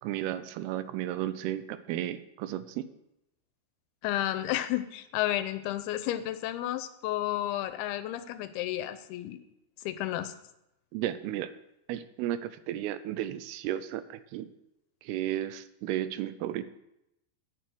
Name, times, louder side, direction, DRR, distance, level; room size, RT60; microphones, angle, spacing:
voice 1, 0.0-2.9 10.9-11.5 11.9-14.5 15.0-16.6, right 12 dB, 85° right, 13 dB, 2.5 m, -33 dB
voice 2, 4.0-9.4 9.8-10.3, left 13 dB, 80° left, 11 dB, 2.6 m, -32 dB
9.3 x 7.0 x 7.7 m, 0.86 s
omnidirectional pair, 4.6 m